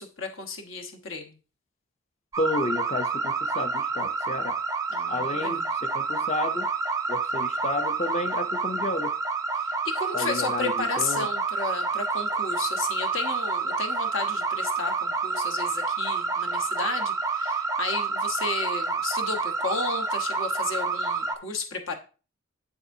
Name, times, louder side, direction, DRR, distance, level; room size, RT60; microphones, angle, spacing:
voice 1, 0.0-1.4 4.9-5.7 9.6-22.0, left 4 dB, 65° left, 1.1 m, -33 dB
sound 1, 2.3-21.4, right 4 dB, 15° right, 0.5 m, -28 dB
voice 2, 2.4-4.6 5.1-6.7 7.1-9.1 10.1-11.3, left 2 dB, 30° left, 0.6 m, -31 dB
8.0 x 6.9 x 2.7 m
head